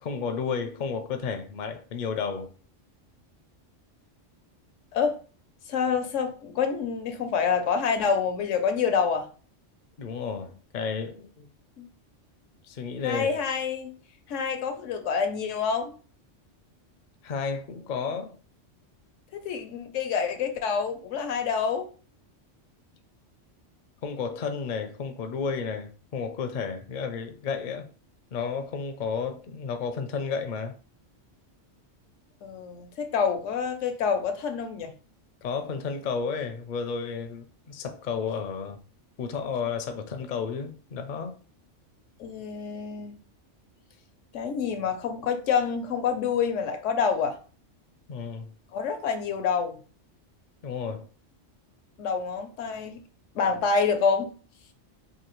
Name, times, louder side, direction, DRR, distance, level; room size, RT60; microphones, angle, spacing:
voice 1, 0.0-2.5 10.0-11.5 12.6-13.4 17.2-18.4 24.0-27.9 28.3-30.7 35.4-38.8 39.2-41.4 48.1-48.5 50.6-51.1, left 5 dB, 50° left, 0.6 m, -32 dB
voice 2, 5.7-9.3 11.8-11.9 13.0-13.9 14.3-15.9 19.3-21.9 32.4-34.9 42.2-43.2 44.3-47.4 48.7-49.8 52.0-53.0 53.3-54.3, left 6 dB, 80° left, 1.0 m, -27 dB
4.7 x 2.7 x 3.0 m
omnidirectional pair, 1.3 m